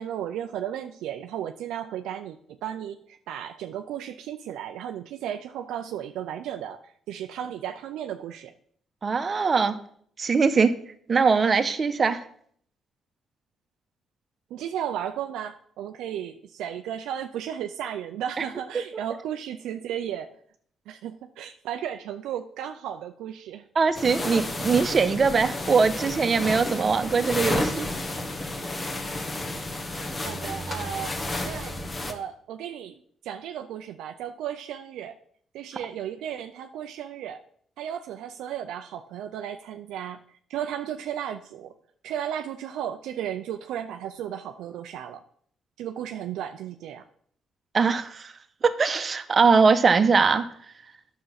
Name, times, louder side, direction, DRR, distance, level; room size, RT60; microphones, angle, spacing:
voice 1, 0.0-8.5 14.5-20.3 20.9-23.7 30.2-31.1 31.4-31.8 32.1-32.9 33.2-35.2 35.5-37.4 37.8-41.7 42.0-45.2 45.8-47.0, right 10 dB, 90° right, 6 dB, 0.5 m, -34 dB
voice 2, 9.0-9.8 10.2-10.7 11.1-12.3 18.4-18.5 23.7-27.9 47.7-48.3 48.6-50.5, right 5 dB, 40° right, 9 dB, 1.0 m, -21 dB
sound 1, 23.9-32.1, left 1 dB, 30° left, 1.4 m, -31 dB
9.5 x 6.7 x 5.8 m, 0.62 s
cardioid pair, 90°, 0 cm